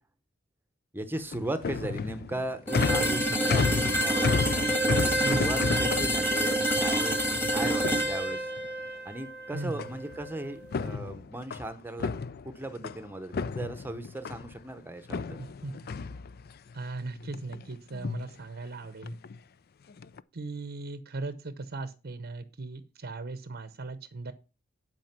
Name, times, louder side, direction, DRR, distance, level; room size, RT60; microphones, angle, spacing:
voice 1, 0.9-7.2 7.5-8.5 9.0-12.1 12.4-15.4, right 1 dB, 10° right, 9 dB, 0.8 m, -37 dB
sound 1, 1.1-8.7 9.8-10.3 10.6-13.0 13.3-14.6 15.1-16.7 17.2-17.6 17.9-18.3 19.0-19.4 19.9-20.2, left 4 dB, 50° left, 0.4 m, -33 dB
sound 2, 2.7-10.5, right 1 dB, 10° left, 1.4 m, -28 dB
voice 2, 3.1-3.5 5.2-5.6 9.5-9.9 15.4-15.7 16.7-19.1 20.3-24.3, right 3 dB, 55° right, 11 dB, 0.8 m, -38 dB
11.0 x 4.9 x 5.9 m, 0.33 s
head